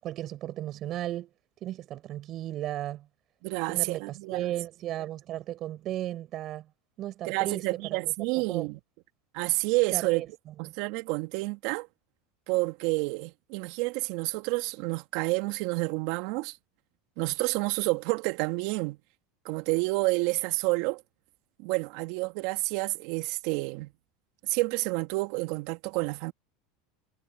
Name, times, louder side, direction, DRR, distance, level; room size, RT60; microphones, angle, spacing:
voice 1, 0.0-1.3 1.6-3.1 3.7-6.7 7.0-8.7 9.9-10.7, right 13 dB, 45° right, 6.0 m, -35 dB
voice 2, 3.4-4.5 7.3-8.8 9.3-10.2 10.6-11.9 12.5-16.6 17.2-19.0 19.4-21.0 21.6-23.9 24.4-26.3, right 25 dB, 65° right, 2.2 m, -29 dB
hypercardioid pair, 90°, 0 cm